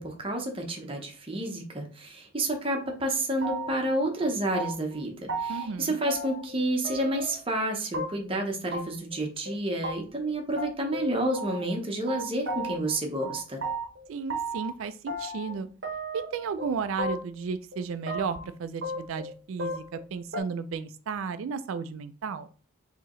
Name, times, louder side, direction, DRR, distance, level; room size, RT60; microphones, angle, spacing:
voice 1, 0.0-13.6, right 1 dB, 25° right, 2 dB, 0.8 m, -30 dB
sound 1, 3.4-3.9 4.2-5.0 5.3-5.7 6.0-6.6 6.8-7.4 7.9-8.4 8.7-8.8 9.1-9.2 9.5-9.6 9.8-9.9 10.2-10.3 10.6-11.8 12.1-13.0 13.2-14.7 15.1-15.6 15.8-16.7 17.0-17.4 17.7-18.4 18.8-20.0 20.3-20.4, right 1 dB, 55° right, 0.8 m, -34 dB
voice 2, 5.5-6.0 14.1-15.7 16.1-22.5, right 5 dB, 80° right, 12 dB, 0.3 m, -34 dB
4.6 x 2.9 x 3.0 m, 0.40 s
head